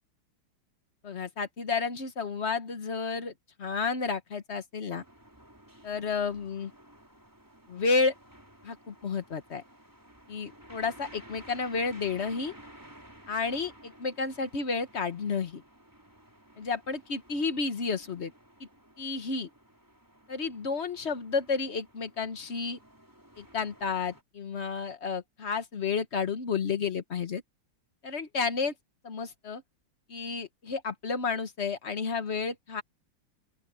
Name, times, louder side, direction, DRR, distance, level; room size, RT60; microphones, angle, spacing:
voice 1, 1.0-3.3 3.6-5.0 5.8-6.7 7.7-8.1 8.6-9.6 10.3-12.5 13.3-15.6 16.6-18.3 18.6-18.7 19.0-19.5 20.3-22.8 23.4-27.4 28.0-28.7 29.0-29.6 30.1-32.8, left 5 dB, 40° left, 1.2 m, -31 dB
sound 1, 4.9-24.2, right 1 dB, 10° right, 4.2 m, -54 dB
open air
omnidirectional pair, 2.2 m